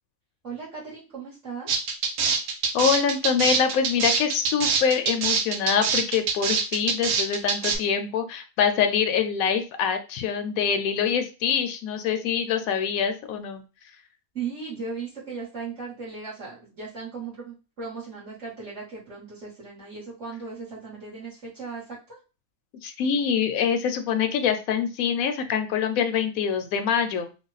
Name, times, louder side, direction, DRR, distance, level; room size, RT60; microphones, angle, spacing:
voice 1, 0.4-1.7 14.3-22.2, right 5 dB, 55° right, -8 dB, 1.8 m, -37 dB
sound 1, 1.7-7.8, right 5 dB, 90° right, 1.2 m, -24 dB
voice 2, 2.7-13.6 22.8-27.3, left 7 dB, 75° left, 7 dB, 1.0 m, -25 dB
3.4 x 2.2 x 3.9 m, 0.32 s
omnidirectional pair, 1.5 m